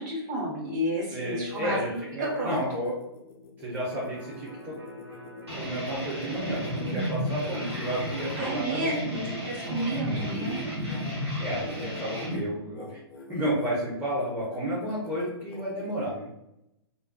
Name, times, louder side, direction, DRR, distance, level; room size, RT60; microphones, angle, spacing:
voice 1, 0.0-2.6 8.3-8.9 9.4-10.6, right 1 dB, 45° right, -4 dB, 1.2 m, -31 dB
voice 2, 1.1-3.0 3.6-4.8 5.5-9.4 10.0-10.2 11.4-13.0 13.3-16.3, equal, 10° right, -7 dB, 0.7 m, -32 dB
sound 1, 1.2-9.0 9.5-11.1 11.6-11.9 12.1-12.4 12.7-13.7 14.2-15.9, left 3 dB, 60° left, 0.5 m, -45 dB
Electric guitar, 3.8-10.0 10.4-10.5, right 2 dB, 65° right, 0.9 m, -50 dB
sound 2, 5.5-12.3, equal, 90° right, 1.0 m, -33 dB
2.4 x 2.3 x 2.3 m, 0.84 s
figure-of-eight pair, 115°, 14 cm